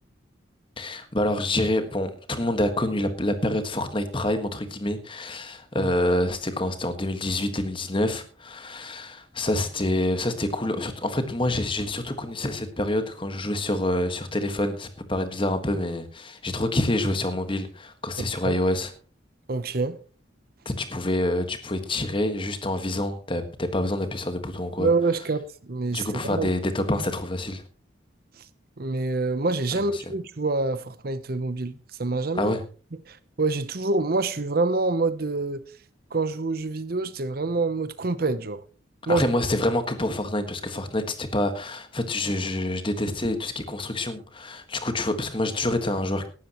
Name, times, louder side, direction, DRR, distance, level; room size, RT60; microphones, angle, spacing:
voice 1, 0.8-18.9 20.6-24.9 25.9-27.6 29.7-30.0 32.3-32.6 39.1-46.3, left 1 dB, 25° left, 1.5 m, -27 dB
voice 2, 19.5-20.0 24.8-26.5 28.8-31.7 32.0-32.5 33.1-35.6 36.1-38.6 39.1-39.2, right 3 dB, 50° right, 0.8 m, -26 dB
18.0 x 12.0 x 3.0 m
head